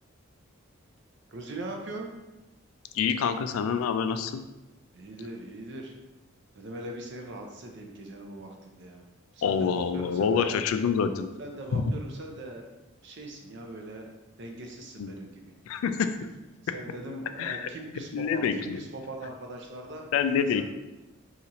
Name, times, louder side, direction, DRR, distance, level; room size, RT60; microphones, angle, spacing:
voice 1, 1.3-2.1 4.9-6.0 6.5-9.0 9.3-10.6 11.4-12.7 13.0-14.1 14.4-15.4 16.7-20.1 20.5-20.6, right 1 dB, 60° right, 2 dB, 0.5 m, -40 dB
voice 2, 2.9-4.4 9.4-11.3 11.7-11.8 15.0-15.1 15.7-16.2 17.4-17.7 18.1-18.8 20.1-20.6, left 6 dB, 90° left, 12 dB, 0.3 m, -26 dB
2.8 x 2.4 x 3.9 m, 1.0 s
head